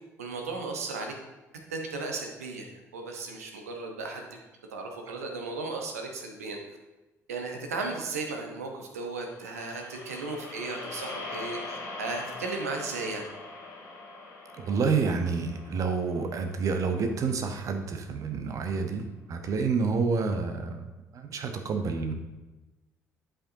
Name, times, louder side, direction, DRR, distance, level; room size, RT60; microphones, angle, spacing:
voice 1, 0.2-1.1 1.7-4.4 4.7-6.6 7.3-13.2, right 3 dB, 75° right, 3 dB, 0.9 m, -35 dB
sound 1, 9.2-17.6, left 3 dB, 50° left, 2.1 m, -42 dB
voice 2, 14.5-20.9 21.1-22.1, right 5 dB, 45° right, 6 dB, 0.9 m, -29 dB
11.0 x 5.1 x 2.7 m, 1.1 s
figure-of-eight pair, 50°, 8 cm